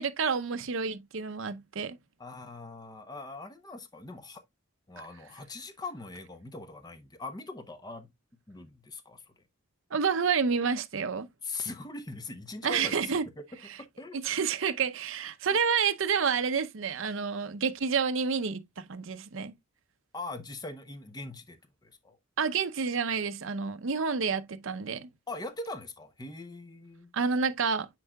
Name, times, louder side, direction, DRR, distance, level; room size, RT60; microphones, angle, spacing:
voice 1, 0.0-2.0 9.9-11.3 12.6-13.2 14.2-19.5 22.4-25.1 27.1-27.9, right 6 dB, 60° right, 0.6 m, -29 dB
voice 2, 2.2-4.4 4.9-8.1 8.5-9.3 11.4-13.4 13.8-14.2 15.5-15.6 20.1-22.2 25.3-27.1, left 3 dB, 20° left, 0.7 m, -41 dB
9.8 x 4.6 x 2.2 m
head